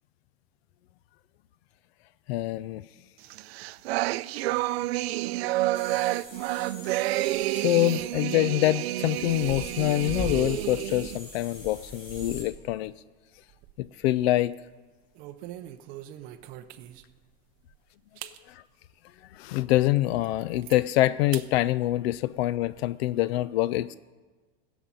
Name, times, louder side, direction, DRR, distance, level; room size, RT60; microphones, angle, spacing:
voice 1, 2.3-2.8 7.5-12.9 13.8-14.6 18.5-18.6 19.3-23.9, left 15 dB, 85° left, 17 dB, 0.5 m, -25 dB
sound 1, 3.3-11.2, right 17 dB, 85° right, 0.5 m, -29 dB
sound 2, 5.7-12.4, left 1 dB, 40° left, 5.2 m, -41 dB
sound 3, 13.3-14.0 14.4-14.6 15.1-17.2 17.7-17.8 18.2-18.4 18.9-19.0 19.5-19.6 20.0-20.8 21.3-21.5 21.9-22.8, right 13 dB, 30° right, 0.5 m, -43 dB
17.0 x 7.2 x 9.0 m, 1.4 s
supercardioid pair, 180°, 31 cm